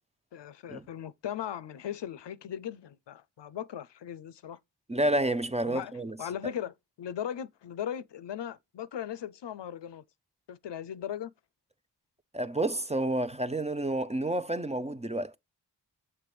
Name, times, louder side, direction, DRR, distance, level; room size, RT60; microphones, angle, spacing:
voice 1, 0.3-4.6 5.6-5.9 6.2-10.0 10.5-11.3, left 9 dB, 75° left, 0.6 m, -38 dB
voice 2, 4.9-6.2 12.3-15.4, right 1 dB, 15° right, 0.4 m, -29 dB
6.8 x 3.3 x 4.7 m
wide cardioid pair, 80°, 42 cm